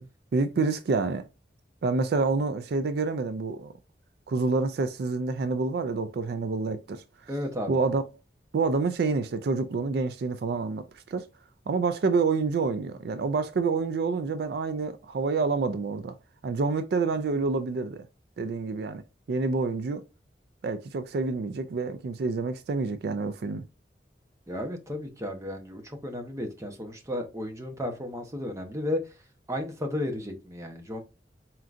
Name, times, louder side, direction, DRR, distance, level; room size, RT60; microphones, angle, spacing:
voice 1, 0.3-1.3 1.8-3.7 4.3-7.3 7.7-8.0 8.5-11.3 11.7-16.1 16.4-18.1 18.4-19.0 19.3-20.0 20.6-23.6, right 4 dB, 65° right, 0.4 m, -28 dB
voice 2, 7.3-7.8 24.5-29.0 29.5-31.0, left 1 dB, 20° right, 0.8 m, -33 dB
4.4 x 3.7 x 2.5 m
head